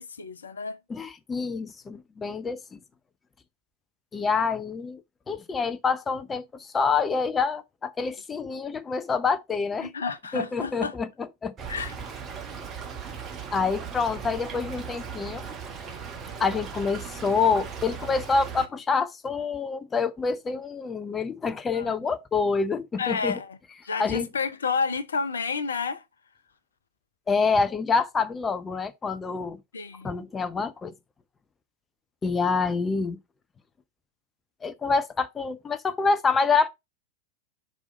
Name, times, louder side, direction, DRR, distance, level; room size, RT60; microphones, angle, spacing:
voice 1, 0.0-0.8 9.8-10.9 11.7-12.0 21.7-21.9 23.0-23.6 23.8-26.0 29.7-30.3, left 5 dB, 70° left, 0.7 m, -30 dB
voice 2, 0.9-2.8 4.1-5.0 5.3-9.9 10.3-11.5 13.5-15.5 16.4-23.4 24.0-24.3 27.3-29.6 30.0-30.9 32.2-33.2 34.6-36.7, left 5 dB, 15° left, 0.6 m, -27 dB
Stream / Trickle dribble, 11.6-18.7, right 6 dB, 25° right, 1.3 m, -38 dB
5.3 x 4.7 x 5.2 m
figure-of-eight pair, 90°, 0 cm